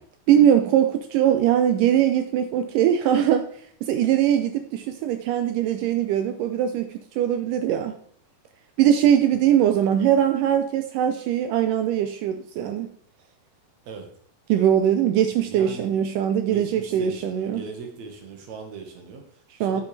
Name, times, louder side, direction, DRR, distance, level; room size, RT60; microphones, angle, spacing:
voice 1, 0.3-3.5 3.8-8.0 8.8-12.9 14.5-17.6 19.6-19.8, right 10 dB, 80° right, 7 dB, 1.9 m, -21 dB
voice 2, 15.4-16.0 16.4-19.8, right 4 dB, 60° right, 3 dB, 2.3 m, -39 dB
9.0 x 8.2 x 3.3 m, 0.62 s
omnidirectional pair, 4.2 m